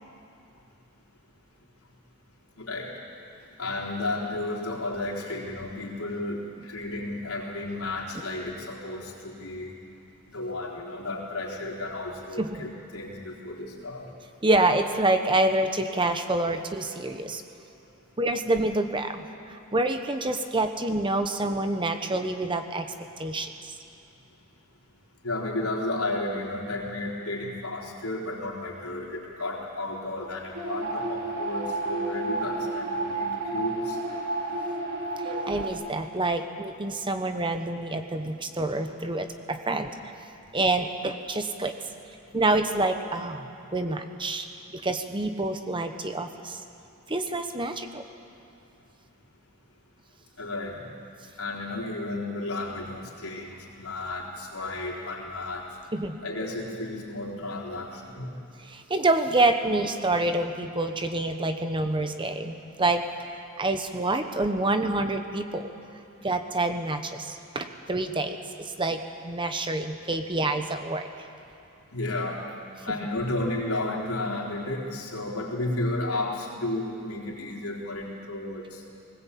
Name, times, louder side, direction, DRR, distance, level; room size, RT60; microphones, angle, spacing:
voice 1, 2.6-2.9 3.6-9.7 10.3-14.1 25.2-34.0 50.4-50.8 51.4-55.7 56.2-58.3 71.9-72.5 72.9-78.8, left 2 dB, 75° left, -3 dB, 4.2 m, -33 dB
voice 2, 14.4-17.4 18.2-22.9 23.2-23.7 35.2-39.9 40.5-41.8 42.3-44.5 44.7-46.6 47.1-48.0 55.9-56.2 58.6-63.0 63.3-65.7 66.2-71.1, right 2 dB, 20° right, 7 dB, 1.0 m, -27 dB
sound 1, 30.5-35.7, right 2 dB, 65° right, 4.1 m, -31 dB
20.0 x 19.5 x 8.5 m, 2.8 s
head